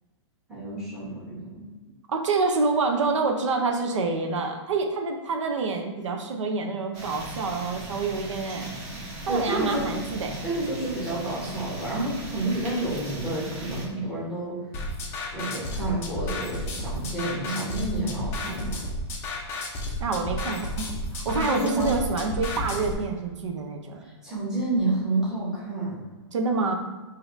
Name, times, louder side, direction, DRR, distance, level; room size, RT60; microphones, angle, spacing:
voice 1, 0.5-1.7 9.3-10.0 10.4-14.6 15.3-18.8 21.3-21.9 24.0-26.0, right 2 dB, 5° right, -9 dB, 1.1 m, -29 dB
voice 2, 2.1-8.7 9.2-10.4 20.0-24.0 26.3-26.7, right 4 dB, 85° right, 3 dB, 0.7 m, -27 dB
sound 1, 6.9-13.8, right 1 dB, 25° right, 1.1 m, -38 dB
sound 2, 14.7-22.9, left 1 dB, 15° left, 0.4 m, -32 dB
5.0 x 2.8 x 2.6 m, 1.2 s
hypercardioid pair, 165°, 15 cm